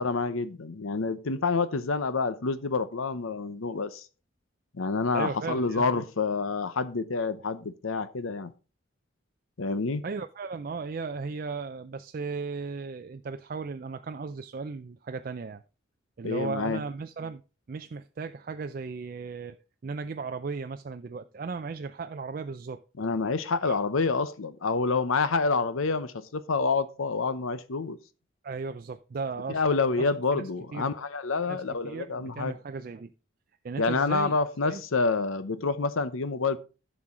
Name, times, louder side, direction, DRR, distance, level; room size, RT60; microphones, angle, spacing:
voice 1, 0.0-4.1 4.7-8.5 9.6-10.0 16.2-16.8 23.0-28.0 29.5-32.5 33.8-36.6, left 4 dB, 85° left, 0.8 m, -28 dB
voice 2, 5.1-5.9 10.0-15.6 16.2-17.4 17.7-19.6 19.8-22.8 23.7-23.8 28.4-29.6 29.9-30.4 30.7-30.9 31.4-33.1 33.6-34.4 34.6-34.8, right 4 dB, 45° right, 0.3 m, -36 dB
11.0 x 6.3 x 3.7 m
head